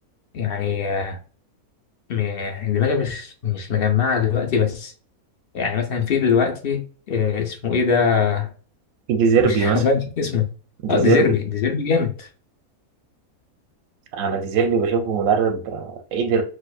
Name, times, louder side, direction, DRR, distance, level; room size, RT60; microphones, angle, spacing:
voice 1, 0.3-1.2 2.1-4.9 5.5-8.5 9.4-10.5 10.9-12.3, left 6 dB, 60° left, 0.6 m, -22 dB
voice 2, 9.1-9.8 10.8-11.3 14.1-16.4, right 5 dB, 70° right, 0.9 m, -20 dB
4.2 x 2.5 x 2.3 m
omnidirectional pair, 1.5 m